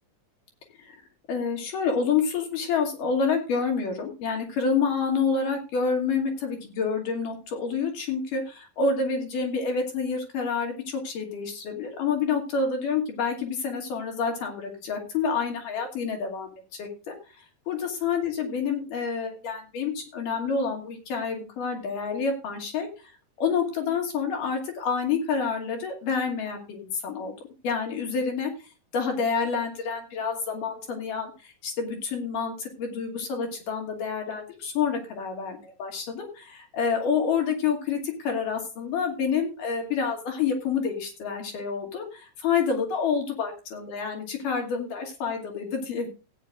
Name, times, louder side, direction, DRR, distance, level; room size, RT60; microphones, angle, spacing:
voice 1, 1.3-16.5 16.8-23.1 23.4-27.3 27.6-28.5 28.9-46.1, left 5 dB, 75° left, 3 dB, 4.1 m, -28 dB
16.5 x 9.5 x 2.5 m, 0.32 s
omnidirectional pair, 3.8 m